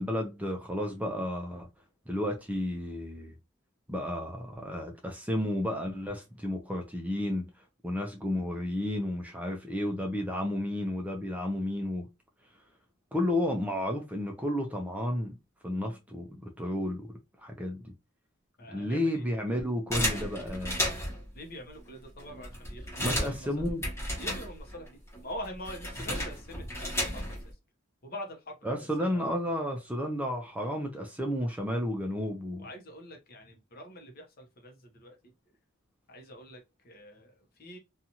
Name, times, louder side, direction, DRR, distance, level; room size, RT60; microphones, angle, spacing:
voice 1, 0.0-1.7 2.1-3.3 3.9-7.5 7.8-12.1 13.1-15.3 15.6-17.1 17.4-17.9 18.7-21.0 23.0-23.9 28.6-32.7, left 1 dB, 5° right, 0.5 m, -32 dB
voice 2, 18.6-19.2 21.3-23.6 24.2-27.4 28.0-29.2 32.6-35.2 36.1-37.8, equal, 45° left, 0.7 m, -44 dB
sound 1, 19.9-21.3 21.9-22.0 22.2-24.9 25.1-27.5, equal, 15° left, 1.1 m, -33 dB
2.7 x 2.3 x 2.8 m
head